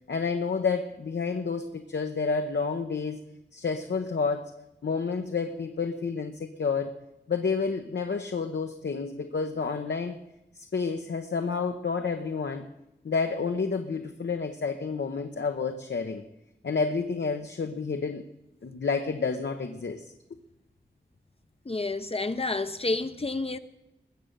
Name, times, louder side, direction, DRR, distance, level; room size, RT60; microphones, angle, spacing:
voice 1, 0.1-3.2 3.5-4.5 4.8-7.0 7.3-10.2 10.6-12.7 13.0-16.2 16.6-18.2 18.6-20.1, left 5 dB, 75° left, 0.9 m, -30 dB
voice 2, 21.7-23.6, left 2 dB, 30° left, 0.6 m, -29 dB
21.0 x 7.8 x 6.7 m
wide cardioid pair, 85°, 18 cm